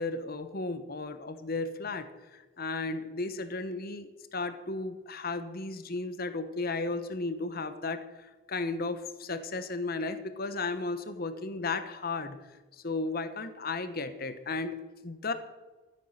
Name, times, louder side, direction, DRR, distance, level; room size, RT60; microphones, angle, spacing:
voice 1, 0.0-12.4 12.7-15.3, left 3 dB, 50° left, 10 dB, 1.1 m, -34 dB
14.5 x 9.2 x 6.4 m, 1.2 s
head